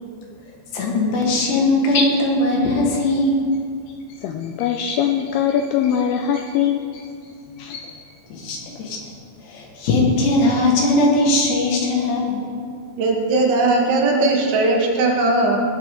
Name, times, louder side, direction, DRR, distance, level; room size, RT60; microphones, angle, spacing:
voice 1, 0.7-3.4 6.3-6.4 8.3-9.0 9.5-12.5, left 2 dB, 70° left, -1 dB, 3.8 m, -19 dB
voice 2, 4.2-7.1 7.6-8.0, left 8 dB, 85° left, 4 dB, 2.3 m, -22 dB
voice 3, 13.0-15.6, right 2 dB, 85° right, -1 dB, 4.1 m, -18 dB
18.5 x 8.5 x 3.8 m, 2.3 s
omnidirectional pair, 5.1 m